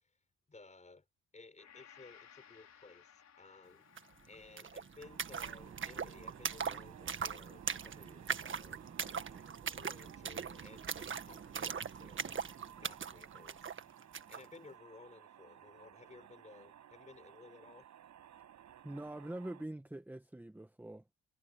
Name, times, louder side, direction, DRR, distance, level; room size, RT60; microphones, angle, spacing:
voice 1, 0.5-1.0 1.3-3.9 4.2-12.4 12.8-17.9, left 3 dB, 25° left, 5.9 m, -57 dB
Gong, 1.6-9.9 10.3-10.4, left 8 dB, 60° left, 4.5 m, -64 dB
sound 1, 4.0-4.1 4.3-14.5, right 7 dB, 40° right, 1.7 m, -41 dB
sound 2, 5.0-19.7, right 10 dB, 70° right, 7.5 m, -58 dB
voice 2, 18.8-21.1, right 1 dB, 5° right, 1.1 m, -44 dB
cardioid pair, 90°, 30 cm